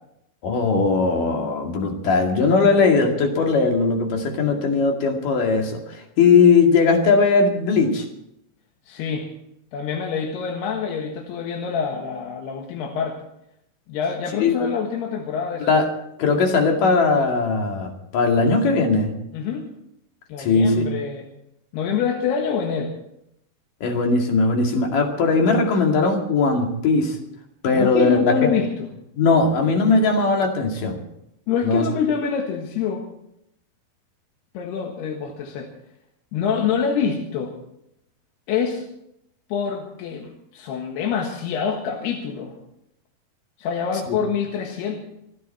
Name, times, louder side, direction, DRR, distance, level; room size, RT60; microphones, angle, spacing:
voice 1, 0.4-8.1 14.4-14.5 15.6-15.9 16.2-19.1 20.4-20.9 23.8-27.2 27.6-28.5 29.2-31.0 31.6-31.9 44.1-44.2, left 4 dB, 60° left, 2 dB, 3.7 m, -19 dB
voice 2, 8.9-9.3 9.7-13.2 13.9-15.7 19.3-19.7 20.3-21.3 21.7-22.9 27.7-28.9 31.5-33.0 34.6-35.7 36.3-37.5 38.5-38.9 39.5-42.5 43.6-45.0, left 7 dB, 90° left, 1 dB, 3.7 m, -26 dB
26.5 x 10.5 x 4.4 m, 0.78 s
omnidirectional pair, 4.6 m